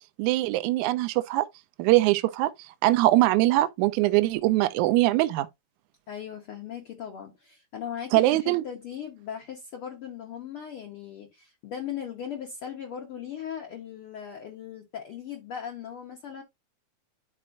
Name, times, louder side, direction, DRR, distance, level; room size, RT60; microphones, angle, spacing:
voice 1, 0.2-1.5 1.8-2.5 2.8-5.5 8.1-8.6, right 17 dB, 80° right, 1.8 m, -22 dB
voice 2, 6.1-16.4, left 8 dB, 70° left, 1.3 m, -38 dB
11.5 x 4.3 x 2.5 m
omnidirectional pair, 4.1 m